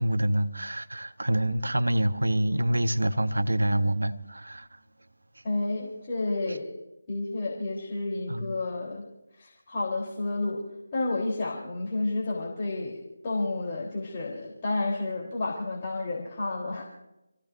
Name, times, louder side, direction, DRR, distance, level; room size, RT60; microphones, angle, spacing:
voice 1, 0.0-4.7 8.3-8.5, right 1 dB, 80° right, 1.1 m, -26 dB
voice 2, 5.4-6.7 7.1-9.0 9.4-10.6 10.9-16.8, left 2 dB, 30° left, 3.6 m, -31 dB
28.5 x 16.0 x 2.6 m
figure-of-eight pair, 160°, 0 cm